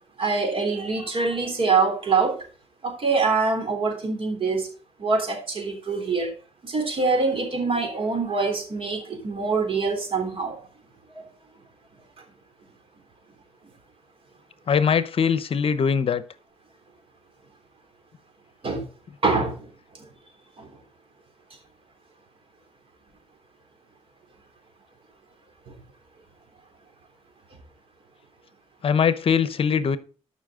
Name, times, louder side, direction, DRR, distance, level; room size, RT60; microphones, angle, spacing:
voice 1, 0.2-2.4 2.8-4.7 5.0-6.3 6.6-10.7 11.1-11.3 18.6-18.9 19.2-19.7 20.6-20.7, right 4 dB, 50° right, 3.4 m, -24 dB
voice 2, 14.7-16.2 28.8-30.0, left 7 dB, 55° left, 0.8 m, -21 dB
12.5 x 5.7 x 3.7 m
cardioid pair, 90°, 12 cm